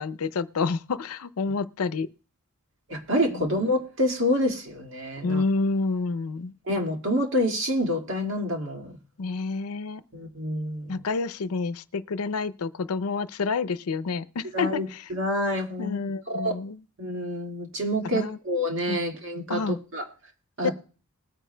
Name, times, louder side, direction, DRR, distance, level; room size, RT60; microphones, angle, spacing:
voice 1, 0.0-2.1 3.3-3.4 5.2-6.5 9.2-10.0 10.9-15.0 15.8-16.8 18.1-18.4 18.9-19.0 19.5-19.8 20.6-20.7, left 4 dB, 85° left, 0.5 m, -28 dB
voice 2, 2.9-5.4 6.7-9.0 10.1-11.0 14.5-16.6 17.0-20.0 20.6-20.7, equal, 60° right, 1.9 m, -27 dB
20.5 x 9.3 x 2.2 m
head